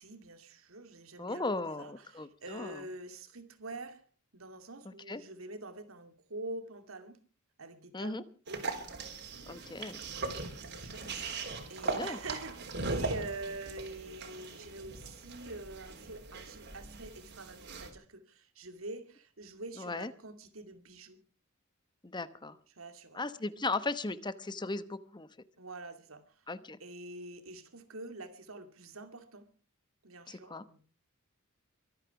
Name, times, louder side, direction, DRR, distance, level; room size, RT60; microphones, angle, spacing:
voice 1, 0.0-4.0 4.3-7.2 7.6-8.8 10.1-11.4 11.7-21.2 22.8-23.3 25.6-26.2 26.8-29.5 30.0-30.8, right 2 dB, 75° right, 2.5 m, -46 dB
voice 2, 1.2-2.8 4.8-5.2 7.9-8.2 9.5-10.0 11.8-12.2 19.8-20.1 22.0-22.6 23.1-25.3 26.5-26.8 30.3-30.7, left 3 dB, 20° left, 1.0 m, -37 dB
sound 1, 8.5-17.9, right 3 dB, 55° right, 3.7 m, -40 dB
24.0 x 9.2 x 5.9 m
head